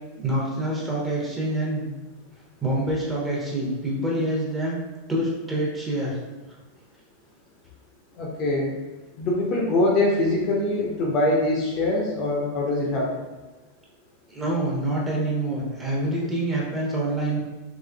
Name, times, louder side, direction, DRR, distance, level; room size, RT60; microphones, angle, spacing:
voice 1, 0.2-1.9 2.6-4.8 5.1-6.1 14.3-17.4, right 1 dB, 15° right, -4 dB, 0.9 m, -26 dB
voice 2, 8.2-8.7 9.2-13.1, left 2 dB, 35° left, -1 dB, 0.6 m, -23 dB
3.6 x 3.0 x 2.2 m, 1.2 s
figure-of-eight pair, 90°, 0 cm